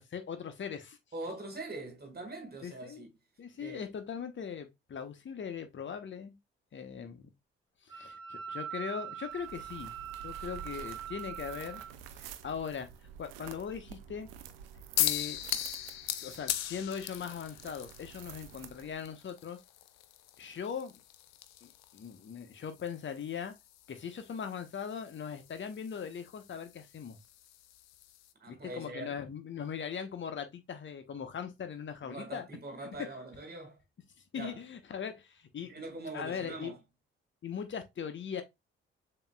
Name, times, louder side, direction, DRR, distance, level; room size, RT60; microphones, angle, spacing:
voice 1, 0.0-1.0 2.6-3.0 3.4-6.4 6.7-7.3 7.8-11.8 12.1-12.9 13.2-14.3 15.0-15.4 16.2-19.6 20.4-20.9 21.6-23.5 23.9-27.2 28.5-32.5 34.3-35.8 36.1-36.7 37.4-38.4, left 7 dB, 40° left, 1.0 m, -40 dB
voice 2, 1.1-3.1 3.6-3.9 7.0-7.1 28.4-29.2 32.0-33.8 34.3-34.6 35.6-36.8, right 2 dB, 30° right, 1.9 m, -43 dB
Wind instrument woodwind instrument, 7.9-11.9, right 9 dB, 15° right, 1.4 m, -42 dB
sound 1, 9.3-19.1, right 8 dB, 75° right, 0.5 m, -50 dB
sound 2, 15.0-28.3, left 13 dB, 60° left, 0.5 m, -40 dB
6.9 x 2.9 x 2.4 m
figure-of-eight pair, 40°, 30 cm